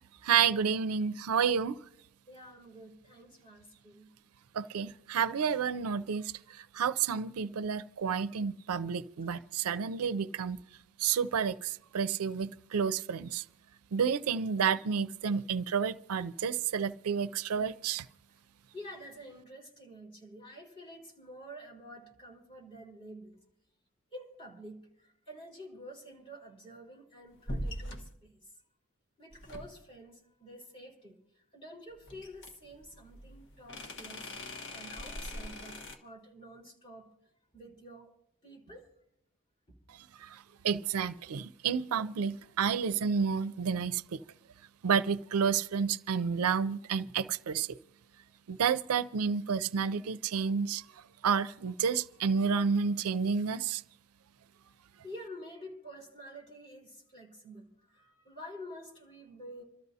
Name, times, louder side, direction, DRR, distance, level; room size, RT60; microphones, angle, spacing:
voice 1, 0.2-1.8 4.5-6.2 6.7-10.6 11.0-13.4 13.9-18.0 40.2-40.3 40.6-44.2 44.8-47.7 48.5-50.8 51.2-53.8, right 6 dB, 85° right, 0.5 m, -30 dB
voice 2, 2.3-4.1 18.7-23.4 24.1-28.3 29.2-31.2 31.5-34.3 34.7-37.1 37.5-38.1 38.4-38.9 47.0-47.1 55.0-59.6, equal, 25° left, 4.4 m, -49 dB
sound 1, 27.5-28.1 29.3-30.0 32.1-36.0, left 1 dB, 55° left, 1.4 m, -41 dB
27.5 x 13.0 x 2.7 m
head